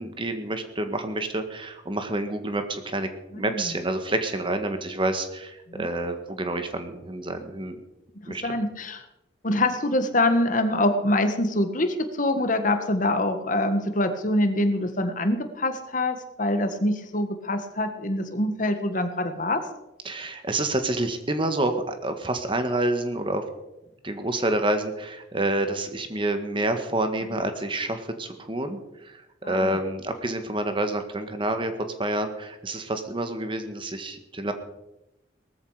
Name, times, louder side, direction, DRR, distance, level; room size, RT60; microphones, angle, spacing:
voice 1, 0.0-7.8 8.2-8.6 9.5-9.6 20.0-23.4 24.0-31.7 32.0-34.5, right 1 dB, 30° right, 7 dB, 1.7 m, -28 dB
voice 2, 3.3-3.7 5.7-5.9 8.4-9.0 9.4-19.6 27.3-27.4 29.4-29.8, left 1 dB, 45° left, 8 dB, 1.7 m, -25 dB
19.0 x 14.0 x 5.0 m, 0.94 s
head